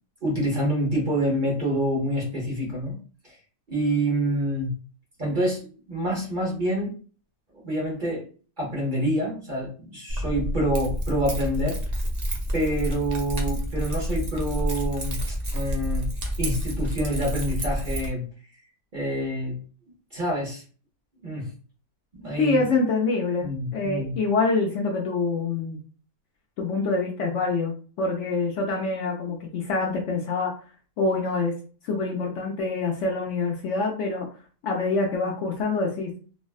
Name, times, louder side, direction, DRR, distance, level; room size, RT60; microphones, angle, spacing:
voice 1, 0.2-3.0 3.2-3.3 3.7-4.7 5.2-6.9 7.6-8.3 8.6-11.8 12.5-16.1 16.4-18.2 18.9-19.6 20.1-20.6 21.2-21.5 22.1-22.6 23.4-24.1, right 1 dB, 40° right, -3 dB, 0.8 m, -27 dB
Keys jangling, 10.1-18.1, equal, 65° right, 0.4 m, -29 dB
voice 2, 22.4-25.8 26.6-30.5 31.0-31.5 31.8-34.3 34.6-36.1, left 3 dB, 65° left, 0 dB, 0.8 m, -26 dB
3.3 x 2.1 x 2.3 m, 0.40 s
omnidirectional pair, 1.5 m